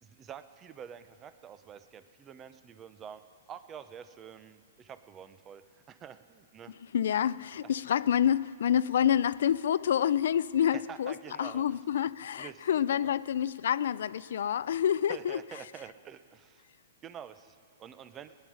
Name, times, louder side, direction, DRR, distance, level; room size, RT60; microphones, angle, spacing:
voice 1, 0.0-3.2 3.5-6.7 10.7-11.6 12.4-13.2 15.1-16.6 17.0-18.3, right 8 dB, 20° right, 0.6 m, -47 dB
voice 2, 6.9-15.4, left 9 dB, 70° left, 0.4 m, -28 dB
19.0 x 10.0 x 6.4 m
hypercardioid pair, 135°, 0 cm